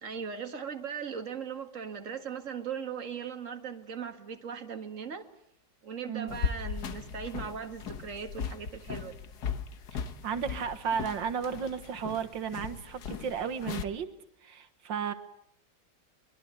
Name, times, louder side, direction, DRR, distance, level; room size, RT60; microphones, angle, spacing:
voice 1, 0.0-5.3 5.8-9.3, right 7 dB, 45° right, 6 dB, 2.3 m, -39 dB
sound 1, 6.3-13.8, left 6 dB, 60° left, 1.7 m, -38 dB
voice 2, 9.9-14.1 14.4-15.1, right 7 dB, 85° right, 10 dB, 2.1 m, -34 dB
23.5 x 22.5 x 9.6 m, 0.71 s
omnidirectional pair, 2.0 m